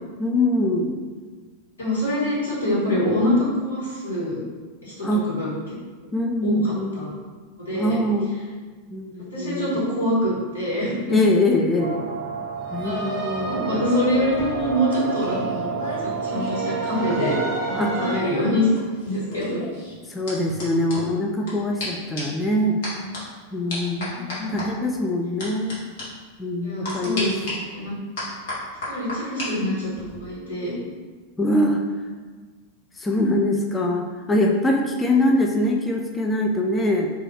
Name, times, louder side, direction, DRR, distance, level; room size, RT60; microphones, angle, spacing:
voice 1, 0.2-1.0 5.0-5.2 6.1-7.1 7.7-8.3 8.9-9.8 11.1-12.0 12.7-13.3 17.8-17.9 20.1-22.8 23.5-24.0 24.5-25.9 26.4-27.4 31.4-31.8 33.0-37.1, left 1 dB, 15° left, 1 dB, 0.3 m, -23 dB
voice 2, 1.8-4.4 4.8-5.7 6.4-7.1 7.6-8.0 9.3-11.2 12.8-15.7 16.0-17.4 17.6-18.7 19.0-19.6 22.9-23.0 23.9-24.5 26.6-28.0 28.8-30.7, left 1 dB, 75° left, -8 dB, 1.3 m, -25 dB
sound 1, 11.8-18.2, right 4 dB, 30° right, 0.7 m, -29 dB
sound 2, 14.1-17.5 17.8-21.5 21.8-21.9 22.2-22.4 22.8-23.2 23.7-24.7 25.4-25.7 26.0-26.1 26.8-27.5 28.2-29.5 29.8-30.2, left 2 dB, 55° left, 1.1 m, -34 dB
3.6 x 2.4 x 3.2 m, 1.4 s
figure-of-eight pair, 90°, 0 cm